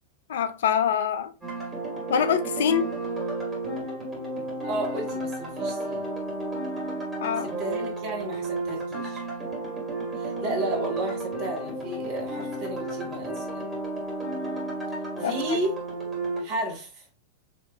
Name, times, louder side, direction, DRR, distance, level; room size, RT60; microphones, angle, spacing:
voice 1, 0.3-1.3 2.1-2.9 7.2-7.5 15.2-15.6, left 8 dB, 60° left, 0.3 m, -25 dB
Little-village, 1.4-16.4, right 2 dB, 10° right, 1.8 m, -32 dB
voice 2, 4.3-6.0 7.4-9.2 10.2-13.6 15.2-15.7 16.4-17.0, right 1 dB, 45° right, 1.4 m, -33 dB
4.1 x 2.9 x 2.5 m
figure-of-eight pair, 90°, 0 cm